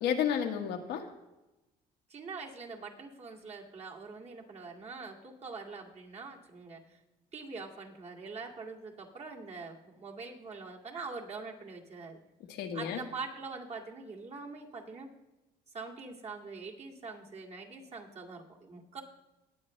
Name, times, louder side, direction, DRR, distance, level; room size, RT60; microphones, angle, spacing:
voice 1, 0.0-1.1 12.5-13.0, left 8 dB, 85° left, 3 dB, 1.5 m, -31 dB
voice 2, 2.1-6.8 7.3-12.2 12.7-15.1 15.7-19.0, right 4 dB, 40° right, -1 dB, 2.2 m, -44 dB
19.5 x 8.5 x 3.2 m, 1.0 s
cardioid pair, 110°, 17 cm